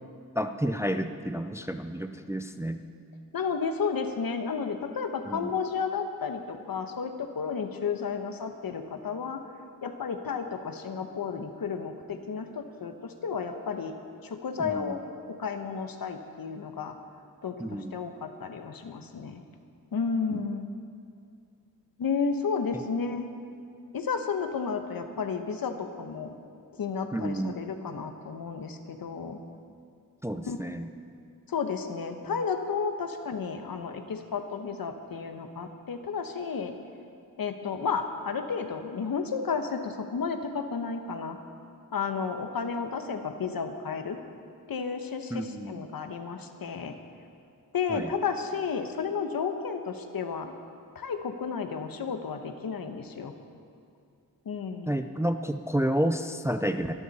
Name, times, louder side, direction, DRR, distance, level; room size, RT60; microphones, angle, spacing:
voice 1, 0.3-2.8 5.3-5.6 14.6-15.0 17.6-17.9 20.3-20.4 27.1-27.6 30.2-30.9 45.3-45.8 47.9-48.1 54.9-56.9, right 1 dB, 10° right, 7 dB, 0.4 m, -30 dB
voice 2, 3.3-9.4 9.8-13.9 14.2-15.0 15.4-16.9 17.4-19.4 19.9-20.7 22.0-23.3 23.9-26.3 26.8-29.4 30.5-30.6 31.5-36.7 37.4-41.4 41.9-44.2 44.7-46.9 47.7-50.5 50.9-53.3 54.4-55.0, left 5 dB, 75° left, 6 dB, 1.1 m, -32 dB
23.0 x 12.0 x 4.2 m, 2.4 s
wide cardioid pair, 175°, 36 cm